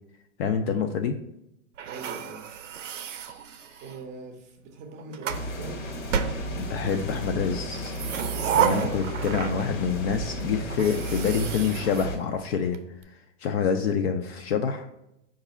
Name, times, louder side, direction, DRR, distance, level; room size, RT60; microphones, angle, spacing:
voice 1, 0.4-1.2 6.6-8.0 8.5-12.8 13.1-14.9, left 6 dB, 55° left, 5 dB, 0.4 m, -27 dB
voice 2, 1.8-2.4 3.8-5.8 9.1-9.6 13.5-13.7, right 3 dB, 20° right, 4 dB, 0.5 m, -43 dB
sound 1, 1.8-4.1 4.8-5.5 6.1-7.0 7.7-9.9 10.2-10.3 10.7-12.8, right 9 dB, 80° right, 0.5 m, -31 dB
sound 2, 5.3-12.2, equal, 90° left, 1.4 m, -34 dB
4.6 x 2.5 x 4.1 m, 0.84 s
hypercardioid pair, 135°, 37 cm